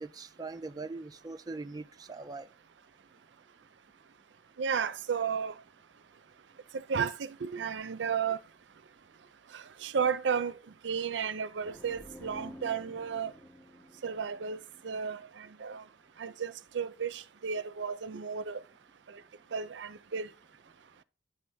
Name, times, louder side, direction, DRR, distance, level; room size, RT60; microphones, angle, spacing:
voice 1, 0.0-2.5, right 3 dB, 20° right, 0.4 m, -41 dB
voice 2, 4.6-5.5 6.7-8.4 9.5-10.6 10.8-13.3 14.0-15.8 16.2-18.6 19.1-19.2 19.5-20.3, right 6 dB, 75° right, 0.5 m, -33 dB
sound 1, 11.6-15.3, equal, 10° left, 0.8 m, -50 dB
9.7 x 3.3 x 5.5 m
head